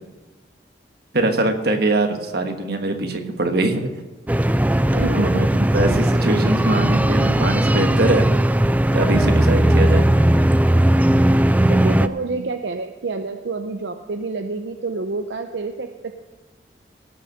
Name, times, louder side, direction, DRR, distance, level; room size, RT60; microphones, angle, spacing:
voice 1, 1.1-3.9 4.9-5.5 5.7-8.3 8.9-10.1 11.9-12.0 12.3-12.4, right 2 dB, 60° right, 5 dB, 1.4 m, -22 dB
sound 1, 4.3-12.1, right 1 dB, 10° right, 0.3 m, -17 dB
voice 2, 5.0-5.9 11.7-16.2, right 3 dB, 80° right, 6 dB, 0.7 m, -28 dB
18.0 x 6.5 x 6.6 m, 1.2 s
head